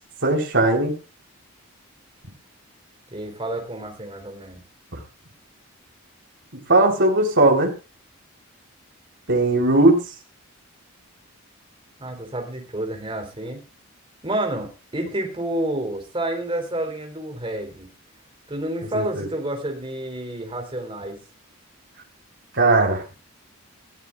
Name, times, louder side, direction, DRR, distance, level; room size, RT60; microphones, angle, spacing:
voice 1, 0.2-0.9 6.7-7.7 9.3-10.0 18.9-19.3 22.5-23.0, right 2 dB, 55° right, 0 dB, 4.0 m, -18 dB
voice 2, 3.1-4.6 12.0-13.6 14.2-17.9 18.5-21.2, right 1 dB, 25° right, 2 dB, 4.0 m, -29 dB
20.5 x 14.5 x 2.5 m, 0.32 s
head